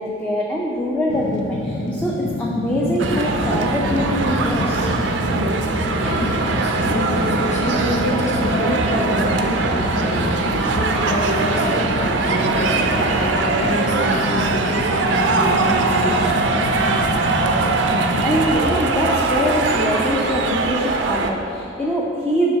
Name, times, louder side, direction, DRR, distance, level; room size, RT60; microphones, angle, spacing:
voice 1, 0.0-4.9 17.9-22.5, equal, 10° left, -4 dB, 0.4 m, -23 dB
Fire, 1.1-18.5, left 1 dB, 85° left, 0.6 m, -27 dB
sound 1, 3.0-21.3, right 3 dB, 75° right, 0.4 m, -21 dB
voice 2, 5.9-16.4, left 1 dB, 40° left, -4 dB, 1.0 m, -28 dB
5.6 x 3.5 x 5.6 m, 2.8 s
head